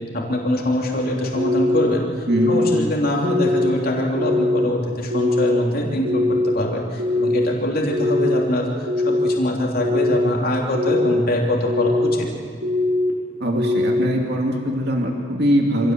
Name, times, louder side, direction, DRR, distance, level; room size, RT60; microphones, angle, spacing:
voice 1, 0.1-12.3, left 1 dB, 50° left, -1 dB, 3.2 m, -23 dB
sound 1, 1.4-1.8 2.3-2.8 3.2-3.7 4.2-4.7 5.1-5.6 6.0-6.5 7.0-7.5 7.9-8.4 8.9-9.4 9.8-10.3 10.7-11.2 11.7-12.2 12.6-13.1 13.6-14.0, left 2 dB, 90° right, 5.0 m, -21 dB
voice 2, 13.4-15.9, equal, 55° right, 1 dB, 2.5 m, -21 dB
26.5 x 17.0 x 7.6 m, 2.1 s
head